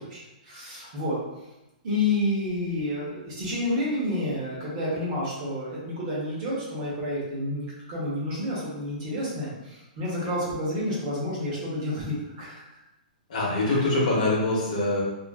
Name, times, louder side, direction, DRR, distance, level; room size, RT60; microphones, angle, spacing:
voice 1, 0.1-1.2 1.8-12.6 13.6-13.8, left 1 dB, 30° right, -7 dB, 0.8 m, -29 dB
voice 2, 13.3-15.0, left 2 dB, 50° left, -4 dB, 0.8 m, -24 dB
2.5 x 2.3 x 2.3 m, 0.99 s
hypercardioid pair, 170°, 5 cm